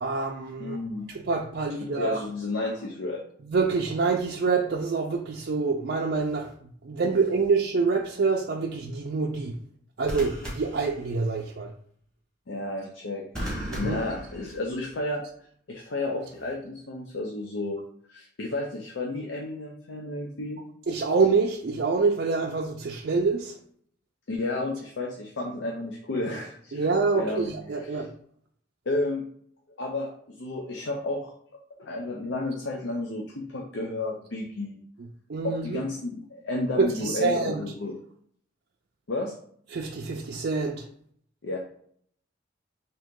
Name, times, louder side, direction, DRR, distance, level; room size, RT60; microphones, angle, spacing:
voice 1, 0.0-2.2 3.5-6.5 6.8-9.6 10.0-11.7 13.7-14.0 20.9-23.6 26.7-28.1 35.3-35.8 37.0-37.6 39.7-40.8, right 4 dB, 55° right, 0 dB, 0.4 m, -26 dB
voice 2, 0.6-1.1 1.8-3.2 12.5-13.2 13.7-15.2 15.7-17.8 18.1-20.6 24.3-26.9 27.2-27.5 27.8-28.0 28.9-29.3 29.8-31.3 31.8-34.8 35.4-38.0 39.1-39.3 41.4-41.6, left 2 dB, 75° left, 0 dB, 0.6 m, -32 dB
sound 1, 6.2-6.5 10.0-11.5 13.3-15.0 16.2-16.5, equal, 5° left, 1.0 m, -37 dB
3.8 x 2.8 x 3.6 m, 0.63 s
head